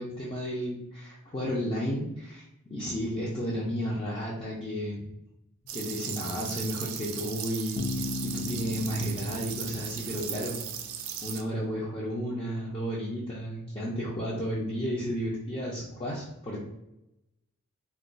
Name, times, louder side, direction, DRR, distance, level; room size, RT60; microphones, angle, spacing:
voice 1, 0.0-5.0 5.7-10.6 11.2-16.6, equal, 25° left, -6 dB, 0.5 m, -33 dB
sound 1, 5.7-11.4, right 9 dB, 70° right, 0.3 m, -37 dB
Bass guitar, 7.8-11.5, left 3 dB, 80° left, 0.3 m, -38 dB
2.3 x 2.3 x 3.8 m, 0.87 s
head